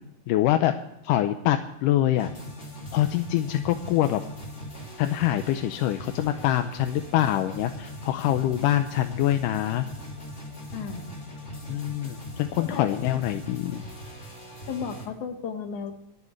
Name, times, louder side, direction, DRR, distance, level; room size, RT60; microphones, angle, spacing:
voice 1, 0.3-0.7 1.0-2.3 2.9-4.2 5.0-9.9 11.7-13.8, left 13 dB, 85° left, 7 dB, 2.3 m, -25 dB
sound 1, 2.1-15.1, equal, 20° left, 2.6 m, -40 dB
voice 2, 10.7-11.1 12.6-12.9 14.7-15.9, left 6 dB, 70° left, 5 dB, 3.0 m, -34 dB
28.0 x 9.7 x 3.3 m, 0.86 s
omnidirectional pair, 3.7 m